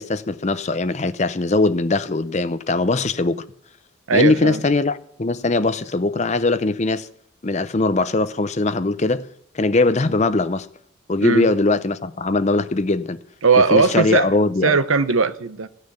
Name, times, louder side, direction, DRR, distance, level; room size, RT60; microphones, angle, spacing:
voice 1, 0.0-3.4 4.1-7.1 7.4-9.3 9.5-10.7 11.1-13.2 13.6-14.8, left 2 dB, 35° left, 0.6 m, -21 dB
voice 2, 4.1-4.6 11.2-11.5 13.4-14.3 14.6-15.7, right 4 dB, 80° right, 0.8 m, -18 dB
16.0 x 6.6 x 9.8 m
head